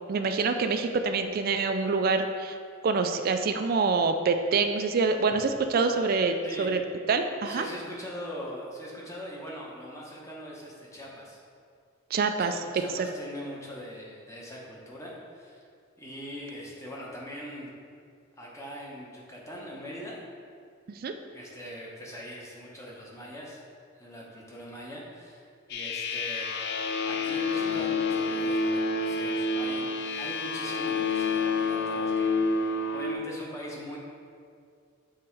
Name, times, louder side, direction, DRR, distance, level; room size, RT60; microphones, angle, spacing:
voice 1, 0.1-2.6 2.8-6.8 7.1-7.7 12.1-12.5 20.9-21.1, right 4 dB, 45° right, 6 dB, 0.3 m, -26 dB
voice 2, 7.4-11.4 12.4-15.6 16.0-17.7 18.4-20.2 21.3-23.6 24.0-29.9 30.2-32.4 32.9-34.0, equal, 15° left, -4 dB, 0.9 m, -41 dB
sound 1, 25.7-33.1, left 3 dB, 55° left, 0.4 m, -28 dB
6.1 x 3.6 x 4.6 m, 2.2 s
head